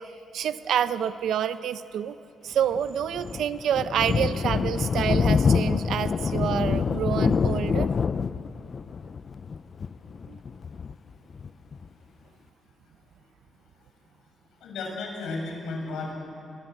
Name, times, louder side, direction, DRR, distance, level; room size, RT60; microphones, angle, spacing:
voice 1, 0.0-2.2 2.4-7.9 10.3-10.4, right 9 dB, 75° right, 12 dB, 0.8 m, -28 dB
Thunder, 2.7-11.9, left 5 dB, 45° left, 0.5 m, -26 dB
voice 2, 14.6-16.1, left 3 dB, 85° left, 1 dB, 5.8 m, -33 dB
23.5 x 20.5 x 7.9 m, 2.8 s
cardioid pair, 90°, 0 cm